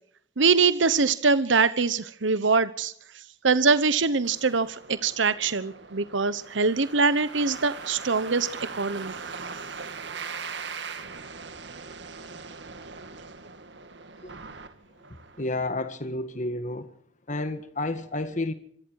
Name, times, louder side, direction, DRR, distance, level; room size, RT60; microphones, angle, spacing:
voice 1, 0.4-2.9 3.4-8.5 8.7-9.1, right 4 dB, 90° right, 1.0 m, -23 dB
sound 1, 4.2-15.4, right 5 dB, 65° right, 2.3 m, -40 dB
voice 2, 15.4-16.9 17.3-18.5, left 2 dB, 40° left, 1.7 m, -30 dB
26.0 x 23.0 x 4.7 m
head